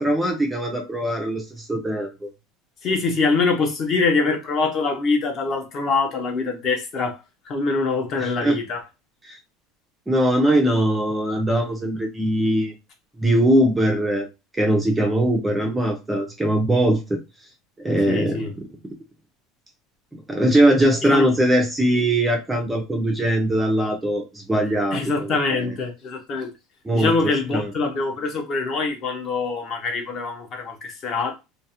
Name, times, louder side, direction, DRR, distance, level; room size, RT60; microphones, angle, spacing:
voice 1, 0.0-2.3 8.2-8.6 9.2-9.4 10.1-12.7 13.2-14.3 14.5-17.2 17.8-18.4 20.1-25.3 26.9-27.7, right 1 dB, 5° right, 0.3 m, -21 dB
voice 2, 2.8-7.2 7.4-8.8 18.1-18.5 21.0-21.3 24.9-26.5 26.9-31.3, left 4 dB, 35° left, 0.6 m, -24 dB
2.3 x 2.0 x 2.7 m
cardioid pair, 160°, 0 cm